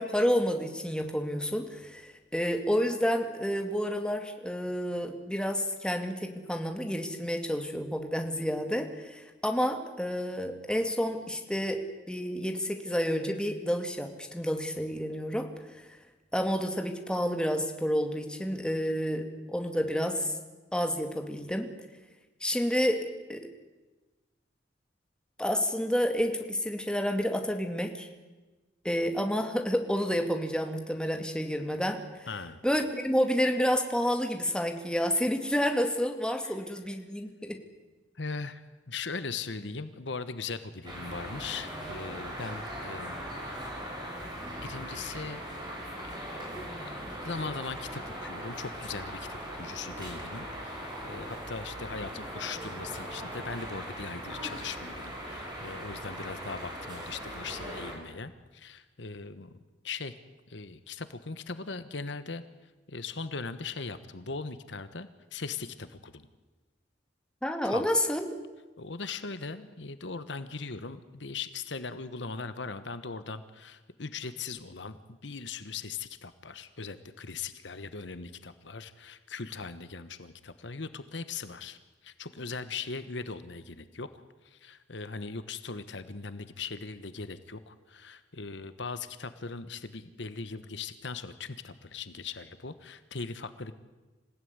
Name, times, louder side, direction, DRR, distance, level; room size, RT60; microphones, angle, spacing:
voice 1, 0.0-11.8 12.1-15.5 16.3-20.3 20.7-21.7 22.4-23.0 23.3-23.4 25.4-28.1 28.8-32.0 32.6-37.6 67.4-68.3, equal, 5° left, 4 dB, 2.3 m, -29 dB
voice 2, 32.3-32.6 36.4-36.6 38.1-43.7 44.6-45.5 46.0-46.2 46.7-59.5 59.8-60.1 60.5-62.4 62.9-66.3 67.6-67.9 68.8-93.7, left 4 dB, 70° left, 12 dB, 1.3 m, -39 dB
sound 1, 40.8-57.9, equal, 25° right, 7.2 m, -40 dB
26.5 x 16.5 x 9.6 m, 1.2 s
head